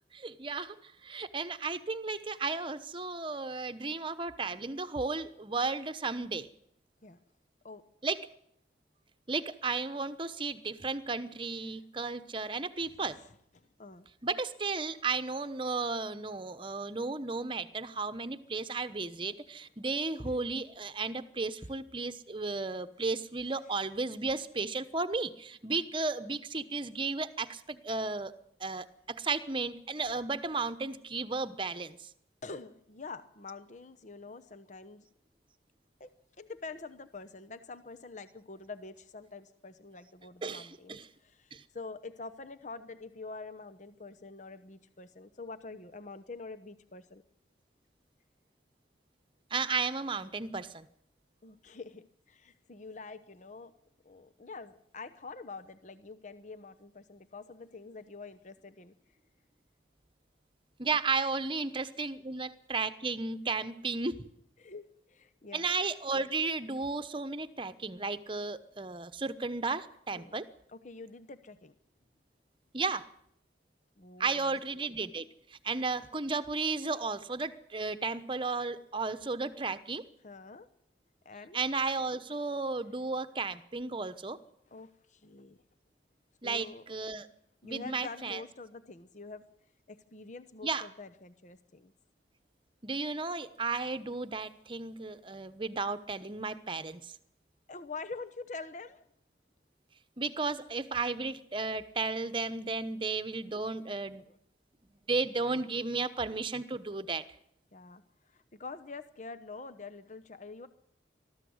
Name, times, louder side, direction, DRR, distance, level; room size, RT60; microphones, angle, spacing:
voice 1, 0.1-6.5 8.0-8.2 9.3-13.2 14.2-28.3 28.6-32.0 40.4-41.1 41.5-41.6 49.5-50.9 60.8-64.3 65.5-70.5 72.7-73.0 74.2-80.0 81.5-84.4 86.4-87.3 87.6-88.4 90.6-90.9 92.8-97.1 100.2-104.2 105.1-107.2, right 4 dB, 30° right, 11 dB, 1.0 m, -34 dB
voice 2, 12.8-13.3 13.5-14.1 21.6-21.7 32.4-35.0 36.0-36.1 36.4-47.2 51.4-53.7 54.0-58.9 64.6-65.7 70.1-70.4 70.7-71.7 74.0-74.6 80.2-80.7 81.2-81.6 84.7-85.6 86.4-86.8 87.6-89.4 89.9-91.9 97.7-99.0 104.3-104.4 107.7-108.0 108.3-110.7, left 3 dB, 45° left, 11 dB, 0.9 m, -46 dB
20.0 x 13.5 x 9.5 m, 0.71 s
head